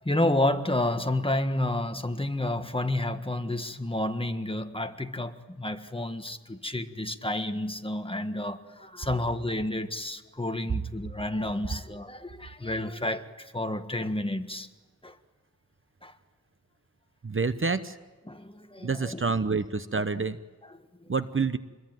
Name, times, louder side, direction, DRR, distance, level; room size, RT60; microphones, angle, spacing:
voice 1, 0.0-14.7 15.0-15.1 16.0-16.1 18.3-19.2 20.2-20.3, left 1 dB, 15° left, 1.6 m, -30 dB
voice 2, 17.2-18.0 18.8-20.4 21.1-21.6, right 4 dB, 40° right, 0.9 m, -28 dB
27.0 x 22.0 x 9.2 m
wide cardioid pair, 95°, 33 cm